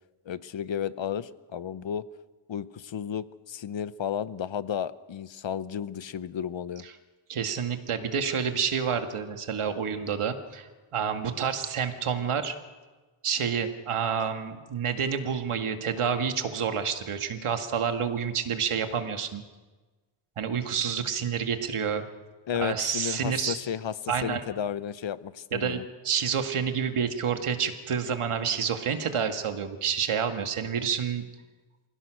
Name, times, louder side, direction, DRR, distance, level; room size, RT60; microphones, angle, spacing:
voice 1, 0.3-2.0 2.5-6.8 22.5-25.8, left 8 dB, 65° left, 16 dB, 0.9 m, -33 dB
voice 2, 7.3-12.6 13.2-19.4 20.4-22.0 22.6-23.6 24.1-24.4 25.5-31.3, right 7 dB, 80° right, 7 dB, 2.0 m, -29 dB
26.0 x 17.0 x 6.4 m, 1.3 s
cardioid pair, 70°, 50 cm